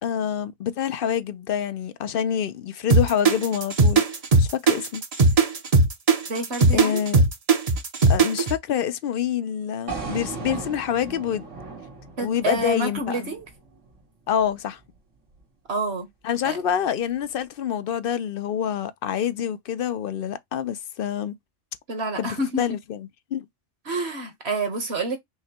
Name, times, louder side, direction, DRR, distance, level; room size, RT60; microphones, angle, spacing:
voice 1, 0.0-4.0 4.4-5.0 6.7-7.2 8.1-11.4 12.2-13.3 14.3-14.8 16.2-21.3 22.2-23.5, left 9 dB, 60° left, 0.7 m, -27 dB
sound 1, 2.9-8.5, right 3 dB, 35° right, 0.7 m, -18 dB
voice 2, 6.3-7.0 12.2-13.5 15.7-16.1 16.4-16.6 21.9-22.6 23.8-25.2, right 2 dB, 60° right, 1.6 m, -28 dB
sound 2, 9.9-14.0, right 4 dB, 80° right, 2.3 m, -36 dB
5.7 x 2.2 x 4.2 m
omnidirectional pair, 1.2 m